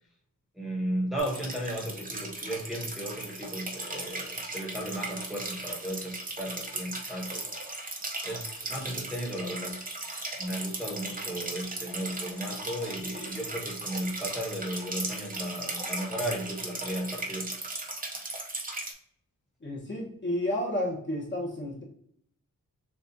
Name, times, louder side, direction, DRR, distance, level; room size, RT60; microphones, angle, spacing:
voice 1, 0.5-7.5 8.2-9.8 10.4-17.5, equal, ahead, -3 dB, 1.0 m, -35 dB
sound 1, 1.2-18.9, right 2 dB, 25° right, 0.7 m, -37 dB
voice 2, 19.6-21.8, left 1 dB, 35° left, -4 dB, 1.0 m, -31 dB
6.9 x 2.4 x 2.7 m, 0.65 s
wide cardioid pair, 180°, 34 cm